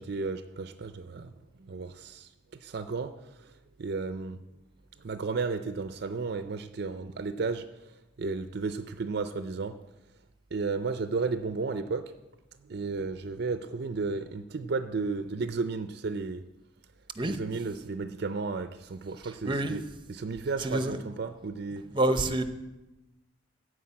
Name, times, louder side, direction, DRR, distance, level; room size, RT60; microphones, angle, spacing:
voice 1, 0.0-1.3 1.6-2.3 2.6-3.2 3.4-3.5 3.8-4.4 5.0-7.7 8.2-9.8 10.5-12.1 12.6-16.4 17.2-19.8 20.1-21.8, right 4 dB, 60° right, 0.5 m, -33 dB
voice 2, 19.2-19.8 20.6-21.1 21.9-22.4, right 1 dB, 25° right, 0.8 m, -28 dB
14.5 x 4.8 x 8.5 m
head